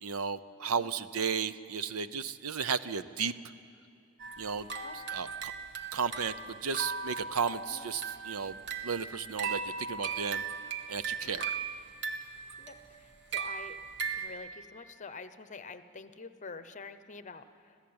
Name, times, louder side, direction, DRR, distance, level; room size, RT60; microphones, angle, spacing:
voice 1, 0.0-3.3 4.4-4.7 5.1-5.5 5.9-8.6 8.8-10.4 10.9-11.5, right 6 dB, 75° right, 14 dB, 0.7 m, -34 dB
sound 1, 4.2-14.3, right 5 dB, 55° right, 1.5 m, -38 dB
voice 2, 12.6-13.8 14.1-17.8, left 4 dB, 35° left, 11 dB, 0.8 m, -47 dB
26.5 x 16.0 x 8.8 m, 2.6 s
head